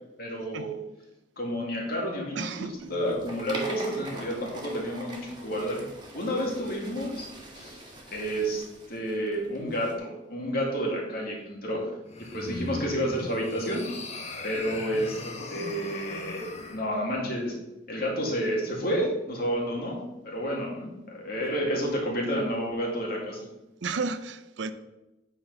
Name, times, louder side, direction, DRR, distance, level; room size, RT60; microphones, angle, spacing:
voice 1, 0.2-0.7 1.4-5.8 6.1-7.3 7.5-7.8 8.1-8.6 8.9-11.9 12.3-13.8 14.4-15.2 15.5-17.5 17.9-23.5, equal, 55° left, 2.2 m, -30 dB
voice 2, 2.3-3.1 23.8-24.7, right 4 dB, 75° right, 0.5 m, -33 dB
sound 1, 2.8-9.9, right 2 dB, 25° right, 1.6 m, -43 dB
sound 2, 12.1-16.8, left 2 dB, 35° left, 1.1 m, -38 dB
8.7 x 4.4 x 5.4 m
head